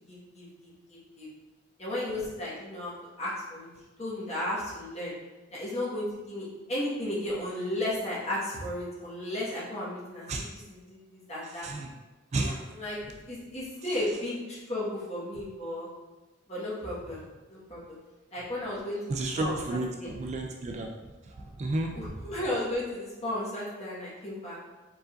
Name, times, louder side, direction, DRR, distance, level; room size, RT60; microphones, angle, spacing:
voice 1, 0.1-1.3 1.8-3.7 4.0-5.1 5.5-11.7 12.7-15.9 16.5-17.2 17.5-18.0 18.3-20.1 21.9-24.6, left 1 dB, 35° left, -8 dB, 1.4 m, -34 dB
voice 2, 19.1-20.9 21.6-21.9, right 2 dB, 35° right, 2 dB, 0.3 m, -31 dB
4.7 x 3.8 x 2.5 m, 1.2 s
head